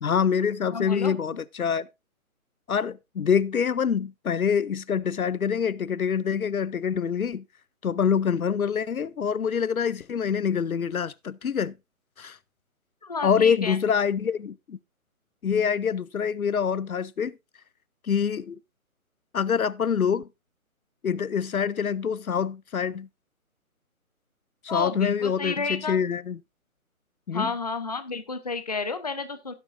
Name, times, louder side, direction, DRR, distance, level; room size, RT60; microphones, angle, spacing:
voice 1, 0.0-1.9 2.7-7.4 7.8-11.7 12.2-12.4 13.2-14.8 15.4-17.3 18.0-18.6 19.3-20.3 21.0-23.1 24.6-26.4 27.3-27.5, left 7 dB, 75° left, 0.6 m, -25 dB
voice 2, 0.7-1.2 13.0-13.8 24.7-26.0 27.3-29.5, left 4 dB, 30° left, 0.6 m, -31 dB
16.5 x 6.8 x 2.5 m
figure-of-eight pair, 145°, 43 cm